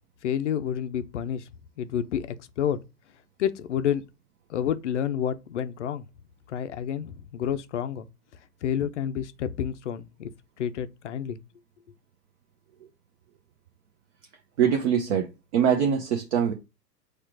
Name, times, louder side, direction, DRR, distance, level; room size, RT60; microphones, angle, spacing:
voice 1, 0.2-1.5 1.8-2.8 3.4-4.0 4.5-6.0 6.5-8.1 8.6-10.3 10.6-11.4, left 9 dB, 50° left, 0.5 m, -29 dB
voice 2, 14.6-15.3 15.5-16.5, right 8 dB, 45° right, 0.7 m, -23 dB
4.3 x 2.4 x 4.5 m
hypercardioid pair, 120°, 50 cm